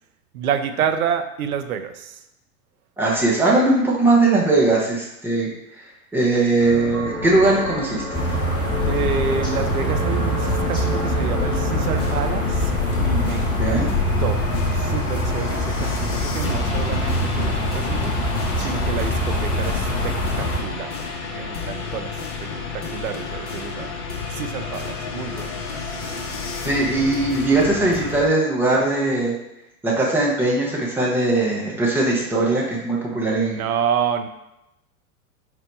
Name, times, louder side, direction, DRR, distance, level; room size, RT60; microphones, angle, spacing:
voice 1, 0.3-2.2 8.9-12.7 13.0-14.4 14.7-18.1 18.6-20.9 21.3-23.9 24.3-25.5 33.1-34.3, right 7 dB, 70° right, 8 dB, 0.5 m, -28 dB
voice 2, 3.0-5.5 6.1-8.2 13.5-13.9 26.6-29.3 29.8-33.6, right 2 dB, 5° right, -5 dB, 0.5 m, -20 dB
sound 1, 6.6-15.0, equal, 90° right, 1.1 m, -30 dB
sound 2, 8.1-20.6, left 1 dB, 10° left, 0.9 m, -23 dB
sound 3, 11.8-28.3, left 5 dB, 50° left, 0.8 m, -31 dB
4.5 x 2.1 x 4.0 m, 0.88 s
figure-of-eight pair, 95°, 46 cm